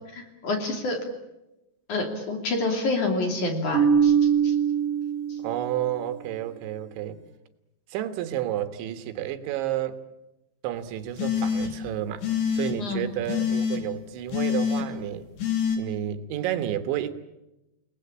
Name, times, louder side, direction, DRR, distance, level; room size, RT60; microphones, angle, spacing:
voice 1, 0.4-1.0 1.9-4.1 4.4-4.5 12.8-13.0, left 2 dB, 45° left, 4 dB, 3.9 m, -27 dB
Marimba xylophone, 3.7-5.8, right 7 dB, 25° right, 1.8 m, -22 dB
voice 2, 5.4-7.2 7.9-10.0 10.6-12.3 12.5-15.3 15.8-17.1, right 12 dB, 80° right, 9 dB, 3.7 m, -31 dB
sound 1, 11.2-11.9 12.2-12.7 13.3-13.8 14.3-14.8 15.4-15.8, left 7 dB, 75° left, 5.3 m, -25 dB
29.5 x 19.0 x 8.7 m, 0.96 s
omnidirectional pair, 5.3 m